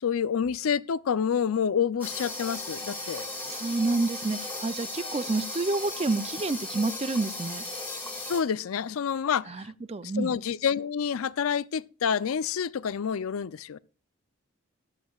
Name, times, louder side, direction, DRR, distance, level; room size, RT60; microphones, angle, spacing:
voice 1, 0.0-3.3 8.3-9.7 10.2-13.8, left 7 dB, 80° left, 0.4 m, -28 dB
sound 1, 2.0-8.4, left 2 dB, 10° left, 2.0 m, -36 dB
voice 2, 3.4-7.6 9.5-10.4, right 3 dB, 30° right, 0.4 m, -29 dB
14.5 x 11.5 x 2.3 m
head